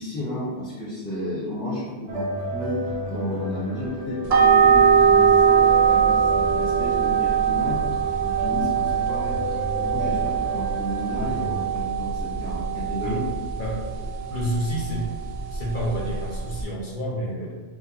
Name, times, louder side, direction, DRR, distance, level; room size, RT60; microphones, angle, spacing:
voice 1, 0.0-9.4 9.7-13.2, equal, 5° left, -10 dB, 0.5 m, -32 dB
sound 1, 2.1-11.7, equal, 80° right, 0.9 m, -33 dB
sound 2, 4.3-16.6, right 7 dB, 65° right, 0.3 m, -22 dB
voice 2, 13.5-15.1 15.5-17.6, equal, 45° left, -4 dB, 1.0 m, -29 dB
4.7 x 2.2 x 2.7 m, 1.4 s
omnidirectional pair, 1.2 m